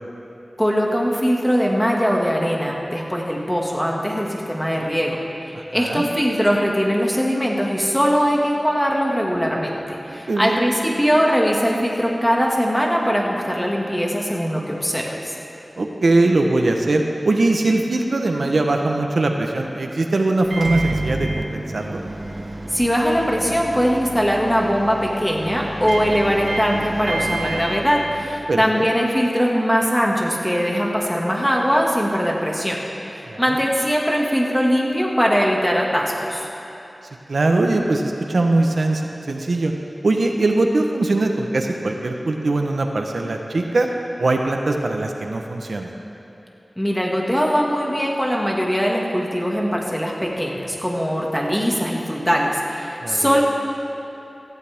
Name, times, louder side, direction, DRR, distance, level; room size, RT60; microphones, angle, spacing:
voice 1, 0.6-5.2 5.5-15.3 22.7-32.8 33.1-36.5 46.8-53.4, equal, 5° left, -2 dB, 2.1 m, -21 dB
voice 2, 5.5-6.0 10.1-10.6 15.8-22.0 28.5-28.9 33.3-33.6 37.3-39.0 39.3-39.7 40.0-43.9 44.2-45.9 53.0-53.4, right 2 dB, 90° right, 2 dB, 1.0 m, -21 dB
Microwave oven, 20.4-28.6, right 2 dB, 60° right, 1.2 m, -29 dB
17.5 x 14.5 x 3.6 m, 2.9 s
wide cardioid pair, 70°, 0 cm